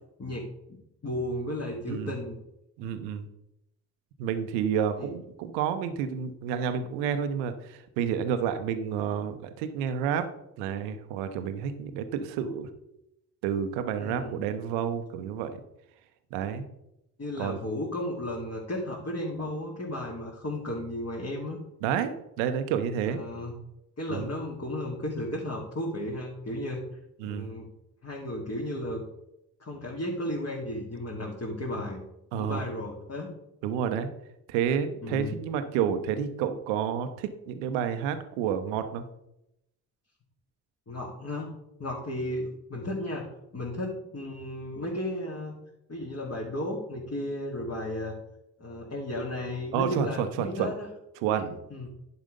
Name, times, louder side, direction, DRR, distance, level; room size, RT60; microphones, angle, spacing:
voice 1, 1.0-2.4 5.0-5.1 14.0-14.4 17.2-21.6 23.0-23.5 24.0-26.8 27.2-27.7 28.0-29.0 29.6-32.0 32.3-33.3 35.0-35.3 40.9-41.5 41.8-43.3 43.5-45.5 45.9-48.2 48.6-50.9 51.4-51.9, left 1 dB, 35° left, -4 dB, 2.5 m, -34 dB
voice 2, 2.8-3.3 4.2-10.3 10.6-12.7 13.4-15.6 16.3-16.7 17.4-17.6 21.8-23.2 24.1-24.3 27.2-27.5 32.3-32.6 33.6-34.1 34.5-39.1 49.7-50.7 51.2-51.5, right 8 dB, 75° right, 9 dB, 0.9 m, -30 dB
10.5 x 4.9 x 5.2 m, 0.84 s
hypercardioid pair, 40°, 46 cm